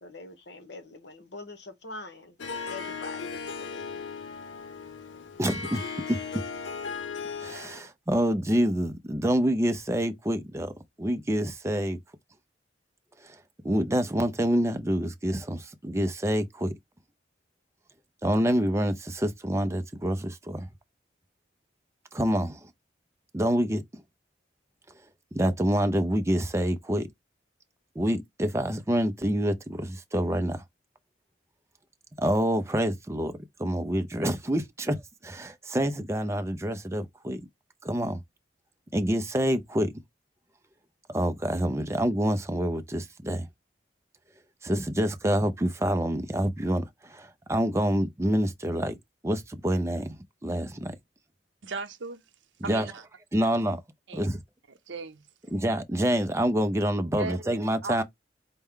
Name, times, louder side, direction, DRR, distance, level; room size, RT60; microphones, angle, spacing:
voice 1, 0.0-4.1, left 2 dB, 65° left, 1.0 m, -44 dB
Harp, 2.4-7.9, left 5 dB, 80° left, 0.7 m, -37 dB
voice 2, 5.4-6.2 7.4-12.0 13.2-16.7 18.2-20.7 22.1-22.7 23.3-24.0 24.9-27.1 27.9-30.6 32.2-37.5 37.8-38.2 38.9-39.9 41.1-43.5 44.6-49.0 49.2-51.0 52.7-52.9 53.3-53.8 54.1-54.4 55.5-58.0, equal, 15° right, 0.5 m, -27 dB
voice 3, 51.6-52.2 52.6-53.1 54.1-54.2 54.9-55.3 57.1-58.0, right 4 dB, 80° right, 0.8 m, -37 dB
4.5 x 2.1 x 3.6 m
head